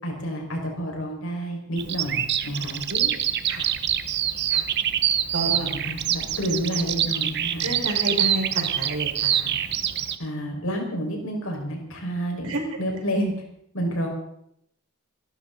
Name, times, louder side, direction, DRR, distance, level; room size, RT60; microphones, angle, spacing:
voice 1, 0.0-2.8 5.7-7.7 10.2-12.5 12.8-13.3 13.7-14.1, equal, 65° left, 1 dB, 5.5 m, -29 dB
Bird vocalization bird call bird song, 1.8-10.1, right 10 dB, 50° right, 1.0 m, -25 dB
voice 2, 2.9-3.2 3.5-3.7 4.5-4.7 5.3-5.7 7.6-9.6 12.4-12.6, right 1 dB, 75° right, 1 dB, 5.0 m, -30 dB
27.5 x 12.5 x 4.1 m, 0.73 s
head